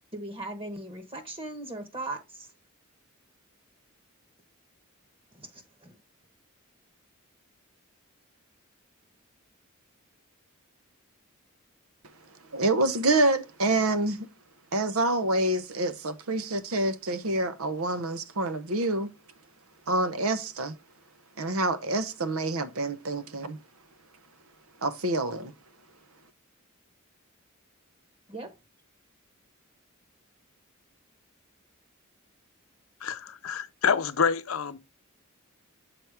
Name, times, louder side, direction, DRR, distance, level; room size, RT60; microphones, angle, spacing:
voice 1, 0.1-2.5 5.3-6.0 28.3-28.5, right 2 dB, 25° right, 1.2 m, -38 dB
voice 2, 12.5-14.3 14.7-19.1 19.9-20.8 21.4-23.6 24.8-25.5, right 2 dB, 85° right, 0.9 m, -27 dB
voice 3, 33.0-34.8, left 6 dB, 70° left, 0.6 m, -27 dB
6.9 x 4.4 x 3.4 m
head